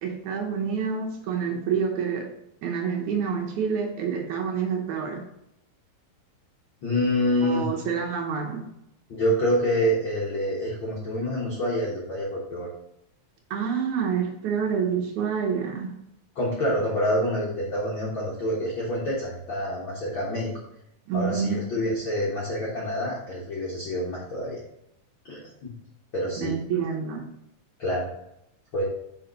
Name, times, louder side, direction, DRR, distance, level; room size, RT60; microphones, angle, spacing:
voice 1, 0.0-2.3 2.6-5.3 7.4-8.7 13.5-16.0 21.1-21.6 26.4-27.3, right 6 dB, 70° right, 1 dB, 2.0 m, -28 dB
voice 2, 6.8-7.7 9.1-12.7 16.3-20.5 21.1-24.6 25.2-25.7 26.1-26.5 27.8-28.1 28.7-28.8, equal, 70° left, -5 dB, 1.1 m, -27 dB
5.7 x 5.0 x 3.9 m, 0.79 s
omnidirectional pair, 4.2 m